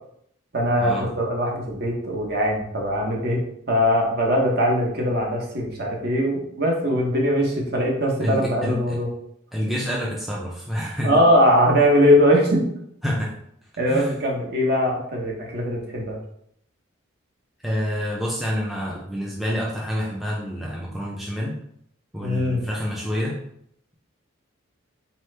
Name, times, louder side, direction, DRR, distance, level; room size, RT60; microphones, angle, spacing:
voice 1, 0.5-3.4 3.7-9.1 11.0-12.6 13.8-16.2 22.2-22.7, equal, 50° right, -1 dB, 1.0 m, -21 dB
voice 2, 8.2-9.0 9.5-11.1 13.0-13.3 13.9-14.1 17.6-21.6 22.1-23.4, equal, ahead, -4 dB, 0.4 m, -28 dB
4.1 x 3.0 x 3.3 m, 0.71 s
head